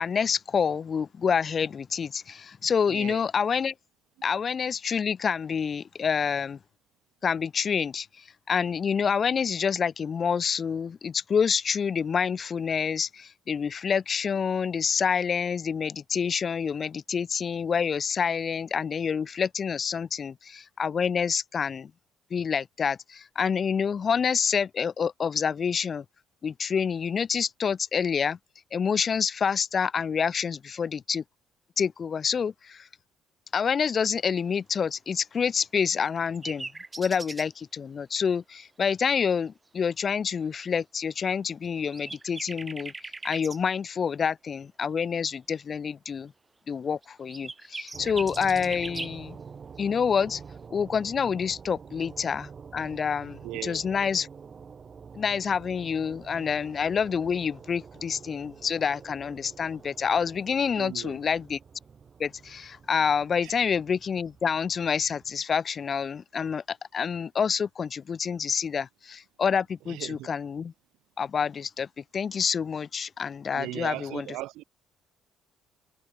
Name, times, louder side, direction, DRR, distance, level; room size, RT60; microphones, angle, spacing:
voice 1, 0.0-3.7 4.2-6.6 7.2-8.1 8.5-21.9 22.3-26.0 26.4-28.4 28.7-31.2 31.8-32.8 33.5-36.7 37.0-42.9 43.2-46.3 46.7-49.4 49.8-50.4 50.7-54.3 55.1-61.6 62.2-70.7 71.2-71.9 72.1-74.3, left 6 dB, 45° left, 0.7 m, -27 dB
voice 2, 2.9-3.2 53.4-53.8 60.8-61.2 63.4-63.5 69.9-70.3 73.5-74.6, right 18 dB, 70° right, 1.7 m, -37 dB
sound 1, 36.0-37.5 41.6-41.7 41.9-43.6 47.0-49.2, right 3 dB, 20° right, 5.6 m, -39 dB
sound 2, 47.9-65.4, right 6 dB, 40° right, 7.7 m, -47 dB
hypercardioid pair, 50°, 0 cm